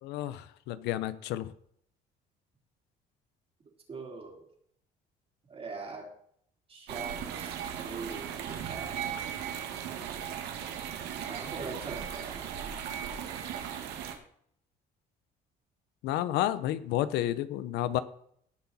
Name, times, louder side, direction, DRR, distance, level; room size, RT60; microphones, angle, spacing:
voice 1, 0.0-1.5 16.0-18.0, left 13 dB, 90° left, 15 dB, 0.7 m, -31 dB
voice 2, 3.9-4.5 5.5-6.1 6.7-9.0 11.2-12.5, right 4 dB, 35° right, 1 dB, 3.7 m, -42 dB
sound 1, 6.9-14.1, right 8 dB, 85° right, 1.9 m, -37 dB
17.5 x 6.0 x 4.2 m, 0.66 s
cardioid pair, 110°, 17 cm